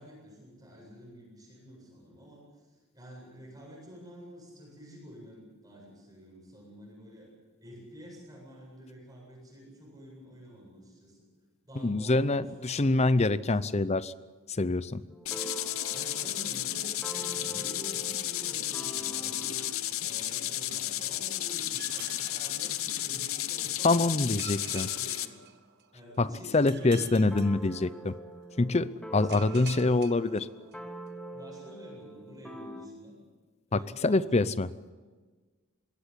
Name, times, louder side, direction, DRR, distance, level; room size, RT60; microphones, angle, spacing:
voice 1, 0.0-7.3 7.6-11.2 11.6-12.9 13.4-13.7 15.9-19.8 20.0-25.4 25.9-27.7 29.2-29.5 31.3-33.2 33.7-34.5, equal, 15° right, -3 dB, 7.9 m, -49 dB
voice 2, 11.7-14.1 14.5-15.0 23.8-24.9 26.2-26.3 26.5-28.1 28.6-30.5 33.7-34.7, left 2 dB, 30° left, 16 dB, 0.6 m, -25 dB
sound 1, 15.1-19.8 27.3-32.9, right 1 dB, 5° left, 1.4 m, -44 dB
sound 2, 15.3-25.3, left 13 dB, 75° left, 0.9 m, -33 dB
sound 3, 21.8-23.4 24.4-26.1 26.7-28.3 29.3-31.0, right 8 dB, 50° right, 1.4 m, -48 dB
22.0 x 17.0 x 8.4 m, 1.4 s
head